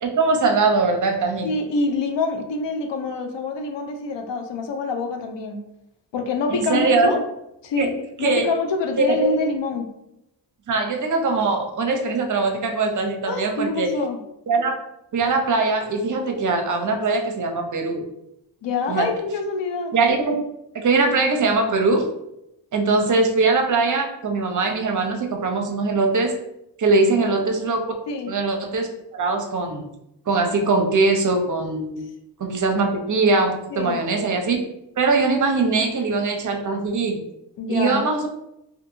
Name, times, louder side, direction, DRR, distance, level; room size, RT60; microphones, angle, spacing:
voice 1, 0.0-1.5 6.5-7.1 7.8-7.9 8.2-8.5 9.0-9.2 10.7-13.9 14.5-14.7 15.1-18.0 18.9-19.1 19.9-20.3 20.7-22.1 22.7-26.3 26.8-27.8 28.3-29.8 30.3-32.1 32.4-34.6 35.0-37.2 37.7-38.3, right 3 dB, 45° right, 4 dB, 0.5 m, -21 dB
voice 2, 1.4-5.6 6.1-7.2 7.6-7.9 8.2-9.9 13.3-14.2 18.6-19.9 27.0-27.3 28.1-28.3 33.7-34.0 37.6-38.2, left 3 dB, 85° left, 5 dB, 0.5 m, -26 dB
2.7 x 2.5 x 2.6 m, 0.83 s
wide cardioid pair, 105°, 43 cm